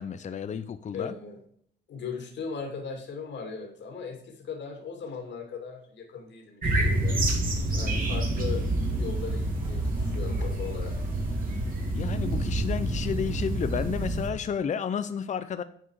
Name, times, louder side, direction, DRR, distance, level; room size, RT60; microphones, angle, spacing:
voice 1, 0.0-1.1 7.6-7.8 11.9-15.6, left 7 dB, 40° left, 11 dB, 0.6 m, -32 dB
voice 2, 0.9-1.4 1.9-7.2 7.6-8.6 9.0-11.0, left 5 dB, 65° left, 2 dB, 2.4 m, -38 dB
sound 1, 6.6-14.3, right 1 dB, 45° right, 3.1 m, -28 dB
9.8 x 4.6 x 4.8 m, 0.65 s
cardioid pair, 90°, 20 cm